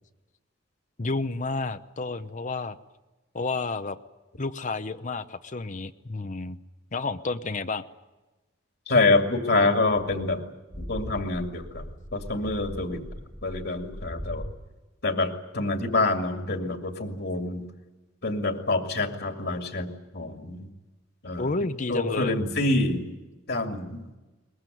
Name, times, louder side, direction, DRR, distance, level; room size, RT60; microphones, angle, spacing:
voice 1, 1.0-2.8 3.3-4.0 4.4-6.6 6.9-7.8 21.4-22.3, left 3 dB, 40° left, 9 dB, 0.8 m, -30 dB
voice 2, 8.9-10.4 10.7-11.8 12.1-13.0 13.4-14.5 15.0-17.6 18.2-20.7 21.2-21.5 21.9-23.1 23.5-24.0, left 2 dB, 65° left, 4 dB, 2.4 m, -26 dB
sound 1, 10.5-14.5, equal, ahead, 1.5 m, -40 dB
22.5 x 20.5 x 9.3 m, 1.1 s
head